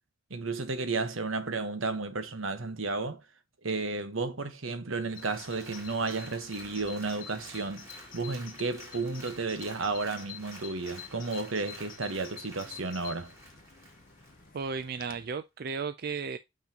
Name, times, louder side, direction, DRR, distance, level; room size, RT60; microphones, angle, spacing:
voice 1, 0.3-3.2 3.6-7.9 8.1-13.3, right 3 dB, 75° right, 1.2 m, -33 dB
Applause, 5.0-14.8 15.2-15.3, right 1 dB, 15° right, 2.5 m, -51 dB
Bird vocalization bird call bird song, 5.1-15.3, left 7 dB, 40° left, 0.9 m, -48 dB
voice 2, 14.5-16.4, right 5 dB, 45° right, 0.4 m, -34 dB
7.3 x 5.9 x 2.9 m
head